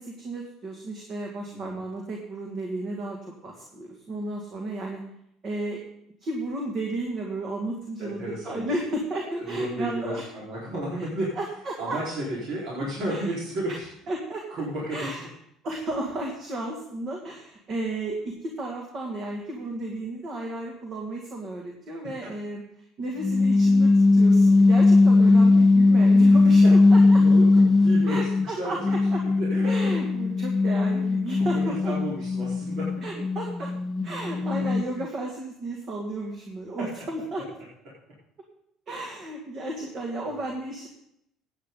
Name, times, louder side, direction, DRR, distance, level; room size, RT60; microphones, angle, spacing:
voice 1, 0.0-3.2 3.4-5.0 5.4-5.8 6.2-10.2 11.4-12.0 13.1-13.2 13.7-13.8 14.1-14.5 14.9-15.3 15.6-22.6 23.0-27.2 28.1-29.2 29.6-31.9 33.0-33.7 34.0-37.4 38.9-40.9, right 2 dB, 40° right, 0 dB, 2.2 m, -33 dB
voice 2, 8.0-8.7 9.3-11.3 11.8-13.9 14.5-15.3 22.0-22.3 25.3-25.6 26.3-26.7 27.0-29.0 29.4-29.7 31.4-33.0 34.3-34.6 36.8-36.9 40.2-40.5, right 1 dB, 60° right, -6 dB, 4.5 m, -33 dB
sound 1, 23.2-28.5 28.8-35.1, left 3 dB, 10° left, 0.5 m, -19 dB
15.0 x 9.1 x 3.9 m, 0.76 s
supercardioid pair, 110°, 0 cm